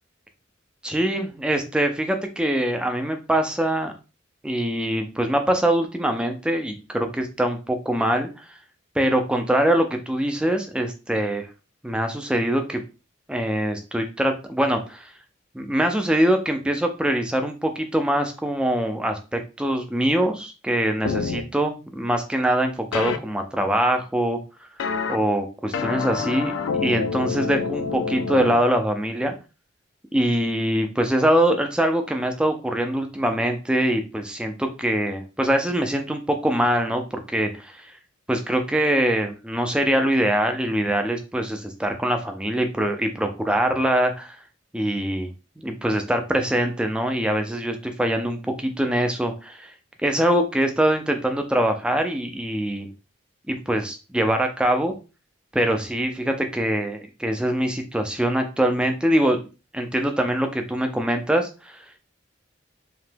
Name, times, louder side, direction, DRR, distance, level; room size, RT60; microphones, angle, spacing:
voice 1, 0.8-3.9 4.4-8.5 9.0-11.5 11.8-12.8 13.3-15.1 15.5-24.4 25.1-26.5 26.8-29.3 30.1-37.9 38.3-44.4 44.7-49.7 50.0-52.9 53.5-54.9 55.5-59.5 59.7-61.8, right 1 dB, 5° right, 5 dB, 0.3 m, -23 dB
sound 1, 21.0-21.4 22.9-23.2 24.8-25.2 25.7-28.5, left 5 dB, 75° left, 0.3 m, -27 dB
2.9 x 2.2 x 3.2 m, 0.31 s
head